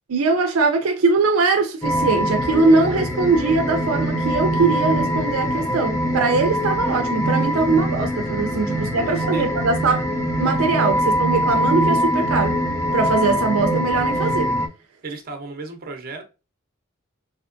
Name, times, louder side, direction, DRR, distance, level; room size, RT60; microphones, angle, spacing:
voice 1, 0.1-10.1 10.4-12.6 12.9-14.5, right 3 dB, 80° right, 0.5 m, -21 dB
sound 1, 1.8-14.7, equal, 15° left, 0.6 m, -23 dB
voice 2, 9.0-9.5 15.0-16.2, right 3 dB, 45° right, 0.7 m, -35 dB
3.3 x 2.8 x 2.5 m
head